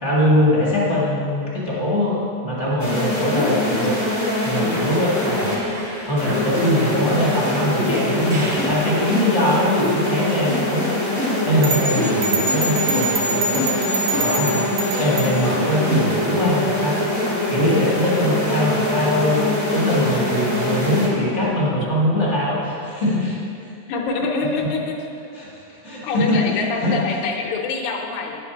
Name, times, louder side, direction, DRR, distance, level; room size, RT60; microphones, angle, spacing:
voice 1, 0.0-4.0 4.4-5.5 6.0-10.8 11.4-14.7 15.0-17.0 17.5-23.7 25.3-26.4 26.8-27.0, equal, 25° left, -7 dB, 1.8 m, -22 dB
sound 1, 2.8-5.6 6.2-21.1, left 1 dB, 10° left, 1.3 m, -23 dB
sound 2, 4.0-9.1, right 1 dB, 55° right, 1.0 m, -36 dB
sound 3, 11.6-15.3, right 3 dB, 75° right, 1.1 m, -25 dB
voice 2, 15.2-15.5 23.9-25.1 26.0-28.4, left 4 dB, 80° left, 1 dB, 2.3 m, -25 dB
9.9 x 5.9 x 5.7 m, 2.5 s
omnidirectional pair, 3.4 m